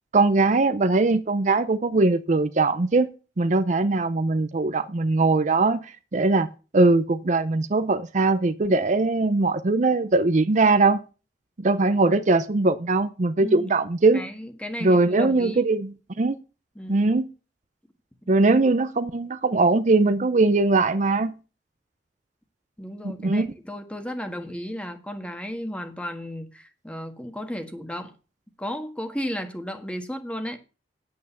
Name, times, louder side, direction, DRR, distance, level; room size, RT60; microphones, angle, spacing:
voice 1, 0.1-3.1 3.4-6.5 6.7-11.0 11.6-14.2 14.8-16.4 16.9-17.3 18.3-21.3 23.0-23.5, right 3 dB, 45° right, 0.6 m, -21 dB
voice 2, 13.4-13.7 14.1-15.7 16.7-17.0 22.8-28.1 28.6-30.6, equal, 5° left, 1.5 m, -34 dB
9.2 x 8.6 x 6.9 m
head